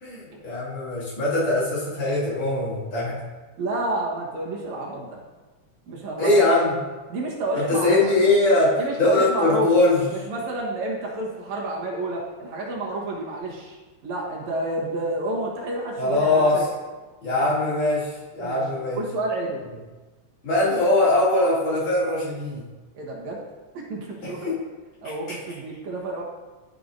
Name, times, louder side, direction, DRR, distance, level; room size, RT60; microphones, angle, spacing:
voice 1, 0.0-3.2 6.2-6.8 7.5-10.0 16.0-16.6 17.2-19.0 20.4-22.6 24.2-24.5, left 2 dB, 60° left, -9 dB, 3.7 m, -21 dB
voice 2, 3.6-5.1 5.9-6.4 7.1-8.2 8.8-9.8 10.1-13.8 14.0-16.6 18.4-18.6 18.9-19.6 22.9-23.4 23.9-24.6 25.0-26.2, right 2 dB, 70° right, -2 dB, 2.6 m, -29 dB
11.0 x 6.7 x 2.6 m, 1.2 s
omnidirectional pair, 3.4 m